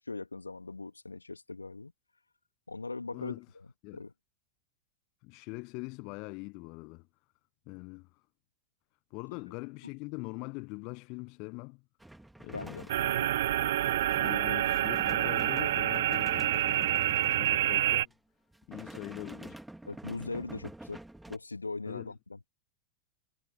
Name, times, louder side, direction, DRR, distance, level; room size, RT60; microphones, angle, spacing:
voice 1, 0.0-1.9 2.7-3.3 3.9-4.1 12.5-13.3 19.9-21.0 21.3-22.5, left 3 dB, 80° left, 2.1 m, -40 dB
voice 2, 3.1-3.5 3.8-4.0 5.2-7.1 7.7-8.2 9.1-11.8 12.4-12.8 14.2-18.1 18.7-19.6 21.9-22.1, left 29 dB, 45° left, 1.2 m, -43 dB
sound 1, 12.0-18.1 18.5-21.4, right 1 dB, 5° right, 2.3 m, -48 dB
sound 2, 12.9-18.1, right 13 dB, 55° right, 0.3 m, -28 dB
figure-of-eight pair, 90°, 0 cm